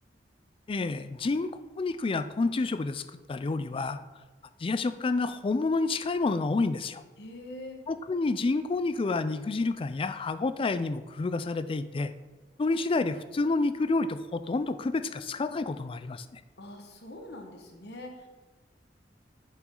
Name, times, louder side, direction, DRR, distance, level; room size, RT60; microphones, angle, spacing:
voice 1, 0.7-4.0 4.6-7.0 7.9-12.1 12.6-16.4, left 3 dB, 30° left, 12 dB, 0.4 m, -29 dB
voice 2, 7.2-7.8 16.6-18.3, left 1 dB, 65° left, 3 dB, 1.4 m, -43 dB
8.0 x 7.3 x 3.8 m, 1.2 s
head